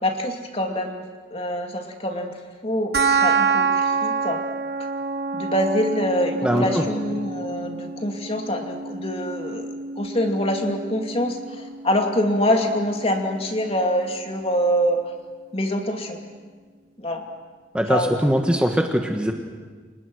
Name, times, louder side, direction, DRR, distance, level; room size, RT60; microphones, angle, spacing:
voice 1, 0.0-2.4 2.6-4.4 5.3-9.7 10.0-15.0 15.5-16.2 17.0-17.2 17.9-18.2, equal, 30° left, 3 dB, 2.7 m, -25 dB
sound 1, 2.9-13.9, right 4 dB, 55° right, 1.4 m, -27 dB
voice 2, 6.4-6.8 17.7-19.3, equal, 5° right, 3 dB, 1.4 m, -21 dB
30.0 x 26.5 x 6.4 m, 1.5 s
head